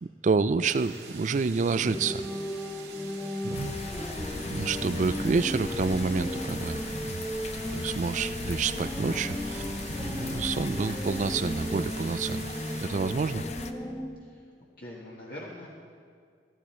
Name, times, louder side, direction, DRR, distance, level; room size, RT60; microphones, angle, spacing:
voice 1, 0.0-2.3 3.4-3.7 4.5-7.2 7.7-9.7 10.0-12.5 12.8-13.4, right 4 dB, 45° right, 14 dB, 0.4 m, -28 dB
sound 1, 0.6-12.9, right 6 dB, 70° right, 1.8 m, -46 dB
sound 2, 1.7-14.1, left 1 dB, ahead, 0.7 m, -35 dB
voice 2, 3.5-4.1 5.1-5.2 14.2-15.7, left 1 dB, 55° left, -5 dB, 1.6 m, -45 dB
sound 3, 3.5-13.7, left 3 dB, 40° left, 0.6 m, -39 dB
15.0 x 13.0 x 4.4 m, 2.1 s
head